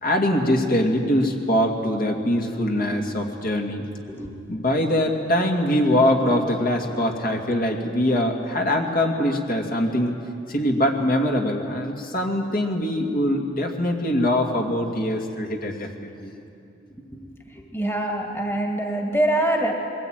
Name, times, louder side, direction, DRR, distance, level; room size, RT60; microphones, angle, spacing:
voice 1, 0.0-3.9 4.5-10.1 10.5-16.3, left 1 dB, 50° left, 1 dB, 2.3 m, -23 dB
voice 2, 17.7-19.7, right 1 dB, 15° left, 1 dB, 2.1 m, -24 dB
22.5 x 19.0 x 9.1 m, 2.6 s
head